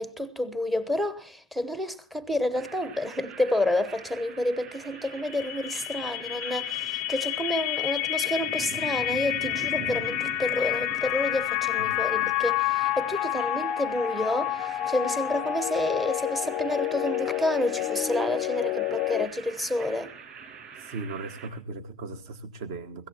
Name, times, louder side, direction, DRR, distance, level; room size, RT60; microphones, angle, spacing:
voice 1, 0.0-20.1, left 1 dB, ahead, 0.9 m, -29 dB
sound 1, 2.5-21.5, right 7 dB, 25° right, 6.3 m, -44 dB
sound 2, 5.0-19.3, left 15 dB, 30° left, 0.6 m, -29 dB
voice 2, 11.8-12.4 20.8-23.1, right 3 dB, 45° right, 1.4 m, -38 dB
21.5 x 16.5 x 2.9 m
hypercardioid pair, 125°, 3 cm